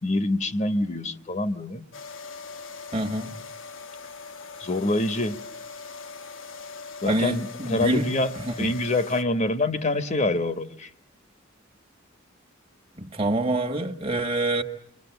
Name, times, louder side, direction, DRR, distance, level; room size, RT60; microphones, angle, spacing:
voice 1, 0.0-1.8 4.6-5.4 7.0-8.3 8.6-10.9, left 2 dB, 35° left, 1.1 m, -25 dB
sound 1, 1.9-9.2, left 4 dB, 75° left, 1.2 m, -41 dB
voice 2, 2.9-3.4 7.1-8.1 8.3-8.7 13.0-14.6, right 1 dB, 30° right, 1.6 m, -26 dB
28.5 x 23.5 x 8.1 m
head